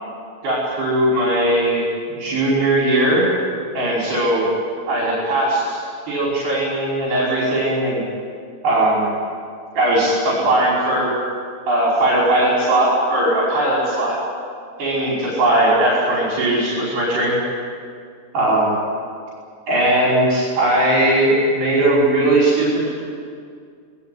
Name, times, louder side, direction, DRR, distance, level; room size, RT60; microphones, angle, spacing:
voice 1, 0.4-1.8 2.1-3.3 3.7-4.4 4.9-5.8 6.1-8.0 8.6-9.1 9.8-11.1 11.7-14.2 14.8-17.4 18.3-18.7 19.7-22.9, right 1 dB, 65° right, -5 dB, 7.5 m, -18 dB
27.0 x 19.5 x 9.5 m, 2.2 s
omnidirectional pair, 5.0 m